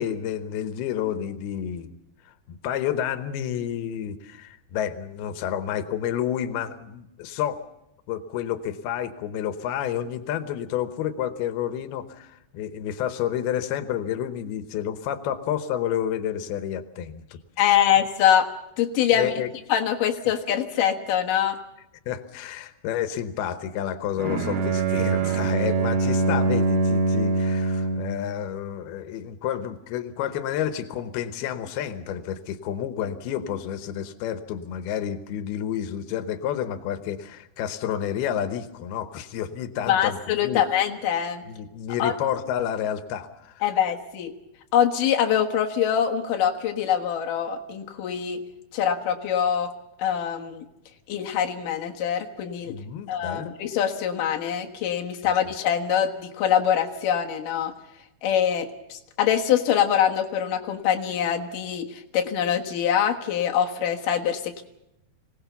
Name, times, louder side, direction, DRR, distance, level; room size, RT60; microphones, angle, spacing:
voice 1, 0.0-1.9 2.2-7.6 8.1-17.2 17.6-17.9 19.1-19.5 20.3-20.4 22.1-40.6 41.5-43.6 52.7-53.5, left 10 dB, 90° left, 11 dB, 2.9 m, -30 dB
voice 2, 17.6-18.5 18.8-19.3 19.7-21.6 39.9-41.4 42.0-42.2 43.6-44.3 44.7-48.4 48.7-49.7 50.0-50.7 51.1-52.8 53.1-57.7 58.2-64.6, left 9 dB, 65° left, 2 dB, 2.9 m, -24 dB
Bowed string instrument, 24.2-28.2, right 3 dB, 50° right, 2.6 m, -23 dB
25.5 x 17.5 x 7.0 m, 0.87 s
omnidirectional pair, 4.3 m